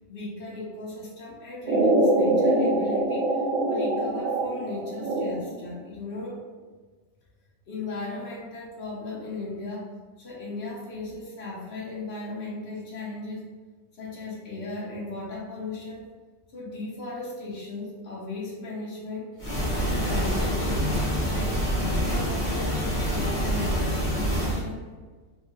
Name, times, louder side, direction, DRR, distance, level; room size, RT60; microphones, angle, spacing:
voice 1, 0.1-3.3 3.6-6.4 7.7-9.9 10.2-13.5 13.9-16.0 16.5-19.3 19.8-20.9 21.3-24.8, left 2 dB, 55° left, -4 dB, 0.7 m, -36 dB
sound 1, 1.7-5.7, right 1 dB, 85° right, 1.4 m, -24 dB
sound 2, 19.4-24.6, equal, 25° left, 0.8 m, -26 dB
3.4 x 2.1 x 3.2 m, 1.3 s
omnidirectional pair, 2.0 m